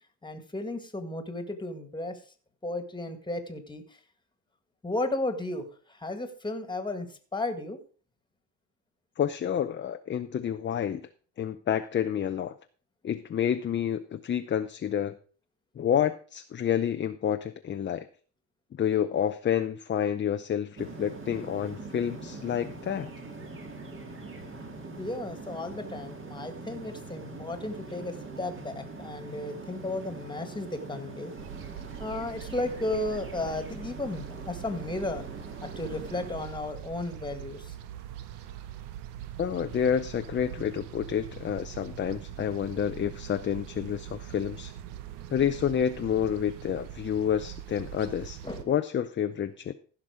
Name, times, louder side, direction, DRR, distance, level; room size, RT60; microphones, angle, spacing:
voice 1, 0.2-2.2 2.6-3.8 4.8-7.8 25.0-31.3 32.0-35.2 35.6-37.7 48.4-48.7, left 2 dB, 10° left, 8 dB, 1.8 m, -34 dB
voice 2, 9.2-11.0 11.4-12.5 13.0-15.2 15.8-18.1 18.7-23.1 39.4-44.7 45.3-48.4 48.7-49.7, left 9 dB, 30° left, 8 dB, 0.6 m, -29 dB
sound 1, 20.8-36.5, right 3 dB, 30° right, 2.0 m, -43 dB
sound 2, 31.4-48.6, right 11 dB, 80° right, 1.2 m, -43 dB
15.0 x 6.0 x 4.9 m, 0.41 s
cardioid pair, 115°, 40 cm